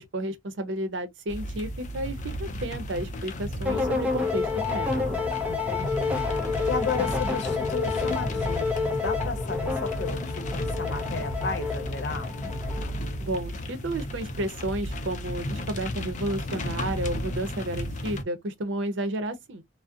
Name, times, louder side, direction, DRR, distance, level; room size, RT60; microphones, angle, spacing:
voice 1, 0.0-5.2 13.2-19.6, right 1 dB, 90° right, 0.6 m, -32 dB
sound 1, 1.3-18.2, left 1 dB, 40° left, 0.4 m, -33 dB
sound 2, 3.7-13.1, left 5 dB, 10° right, 0.6 m, -29 dB
voice 2, 5.5-6.2 6.7-12.4, left 4 dB, 65° left, 0.7 m, -33 dB
2.6 x 2.0 x 2.4 m
head